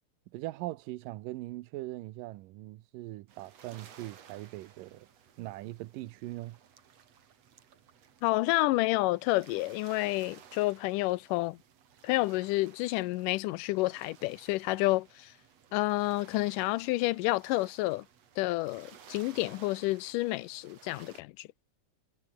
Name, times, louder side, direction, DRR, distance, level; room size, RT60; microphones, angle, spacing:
voice 1, 0.3-5.1 5.4-6.6, right 17 dB, 85° right, 2.5 m, -41 dB
sound 1, 3.3-21.2, right 8 dB, 55° right, 3.1 m, -57 dB
voice 2, 8.2-11.6 12.0-15.3 15.7-18.1 18.4-21.5, left 19 dB, 80° left, 2.2 m, -29 dB
omnidirectional pair, 3.8 m